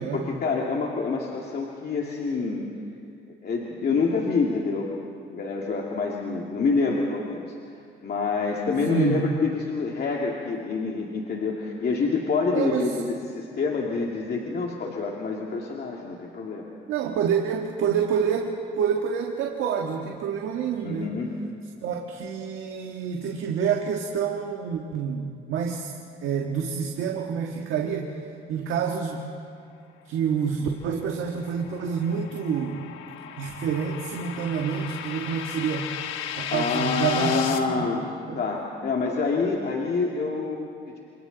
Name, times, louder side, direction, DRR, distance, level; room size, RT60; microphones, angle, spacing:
voice 1, 0.1-2.6 3.4-4.9 5.3-7.4 8.0-16.6 20.8-21.3 36.5-38.1 38.4-41.0, left 4 dB, 55° left, -1 dB, 2.2 m, -27 dB
voice 2, 8.8-9.3 12.5-13.0 16.9-21.1 21.8-25.9 26.2-28.2 28.5-29.3 30.0-32.8 33.4-35.9 36.3-37.9 38.3-38.4, right 7 dB, 85° right, 1 dB, 1.6 m, -28 dB
sound 1, 30.8-37.6, left 9 dB, 85° left, 1.2 m, -36 dB
28.0 x 27.5 x 4.0 m, 2.4 s
cardioid pair, 90°, 20 cm